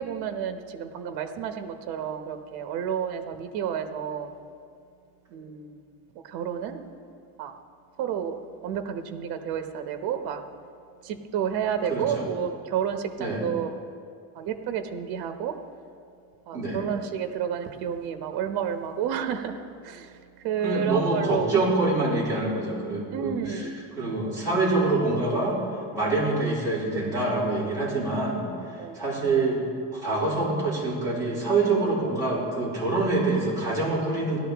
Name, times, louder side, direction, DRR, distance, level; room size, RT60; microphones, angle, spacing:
voice 1, 0.0-4.3 5.3-5.8 6.2-6.8 7.4-7.5 8.0-10.4 11.0-13.7 14.3-15.6 16.5-20.2 20.4-21.7 23.1-23.8 28.8-29.0, right 8 dB, 65° right, 7 dB, 1.0 m, -30 dB
voice 2, 11.9-12.2 13.2-13.4 16.5-16.9 20.6-23.7 24.0-25.6 25.9-28.4 28.9-29.6 29.9-34.4, right 2 dB, 10° right, -9 dB, 3.5 m, -25 dB
16.5 x 12.0 x 3.4 m, 2.4 s
cardioid pair, 180°, 39 cm